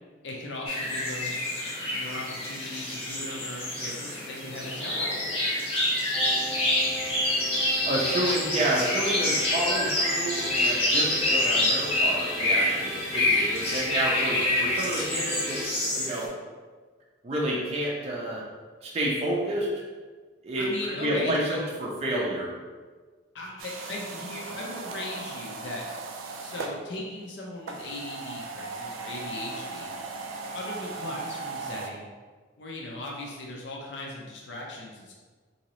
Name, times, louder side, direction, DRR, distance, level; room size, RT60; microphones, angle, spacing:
voice 1, 0.2-1.3 1.9-5.2 8.6-8.8 20.6-21.7 23.3-25.8 26.4-29.9 30.5-32.1 32.6-35.1, left 2 dB, 60° left, -2 dB, 0.6 m, -38 dB
sound 1, 0.7-16.3, left 1 dB, 30° left, 0.8 m, -27 dB
sound 2, 6.1-15.6, equal, ahead, 0.8 m, -38 dB
voice 2, 7.9-15.6 16.0-16.3 17.2-18.4 18.8-19.7 20.4-20.7 21.0-22.5, right 1 dB, 30° right, -4 dB, 0.4 m, -29 dB
sound 3, 23.6-26.8 27.6-31.9, right 3 dB, 85° right, 0.4 m, -37 dB
3.8 x 2.7 x 3.0 m, 1.4 s
head